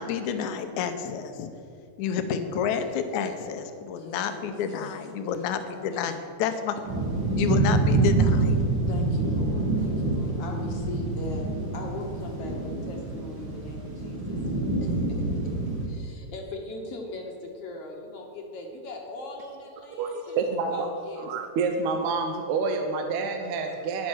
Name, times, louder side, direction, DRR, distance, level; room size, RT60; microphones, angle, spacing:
voice 1, 0.0-1.5 2.0-6.8 7.4-8.6, left 7 dB, 80° left, 8 dB, 2.1 m, -29 dB
voice 2, 4.0-5.4 5.7-6.1 8.9-11.4 11.7-14.4 14.8-15.4 15.8-21.3, left 2 dB, 60° left, 1 dB, 1.8 m, -40 dB
sound 1, 6.9-15.9, right 2 dB, 45° right, 2.1 m, -26 dB
voice 3, 20.0-20.9 21.2-24.1, right 4 dB, 80° right, 4 dB, 2.0 m, -28 dB
9.9 x 7.2 x 6.2 m, 2.4 s
omnidirectional pair, 3.4 m